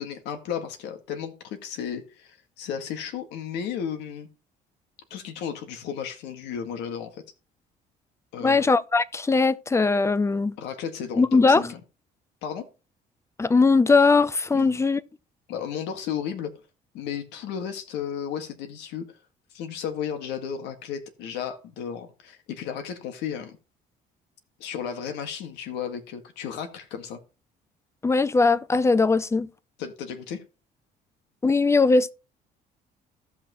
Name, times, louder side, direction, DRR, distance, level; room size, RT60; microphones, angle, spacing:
voice 1, 0.0-4.3 5.1-7.2 8.3-8.7 10.6-11.8 12.4-12.7 14.5-14.8 15.5-16.5 16.9-19.1 19.5-23.6 24.6-27.2 29.8-30.4, left 8 dB, 90° left, 1.8 m, -34 dB
voice 2, 8.4-10.5 11.2-11.6 13.4-15.0 28.0-29.5 31.4-32.1, left 4 dB, 15° left, 0.5 m, -20 dB
15.0 x 5.9 x 3.0 m
cardioid pair, 110°, 17 cm